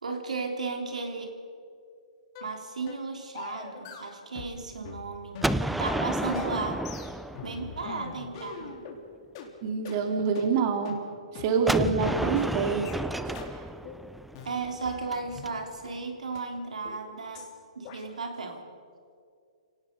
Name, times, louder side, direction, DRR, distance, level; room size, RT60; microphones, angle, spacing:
voice 1, 0.0-1.3 2.4-5.4 5.7-6.8 7.4-8.7 14.5-17.4 17.8-18.6, right 4 dB, 90° right, 3 dB, 3.5 m, -34 dB
sound 1, 2.3-2.5 2.9-3.1 3.3-4.6 4.8-9.0 9.3-9.5 9.8-10.0 10.3-10.5 10.8-11.0 11.3-11.5 11.8-12.0 12.3-12.5 12.8-13.0 13.3-13.5 13.8-14.0 14.3-15.5 15.8-15.9 16.3-16.4 16.8-17.0 17.3-17.5 17.8-18.0, left 6 dB, 40° left, 3.5 m, -42 dB
Gunshot gunfire, 5.4-8.2 11.7-15.5, right 1 dB, ahead, 0.5 m, -31 dB
voice 2, 9.6-11.0 11.3-12.9 13.2-13.4, right 5 dB, 40° right, 4 dB, 2.5 m, -26 dB
29.0 x 18.0 x 5.3 m, 2.3 s
hypercardioid pair, 145°, 4 cm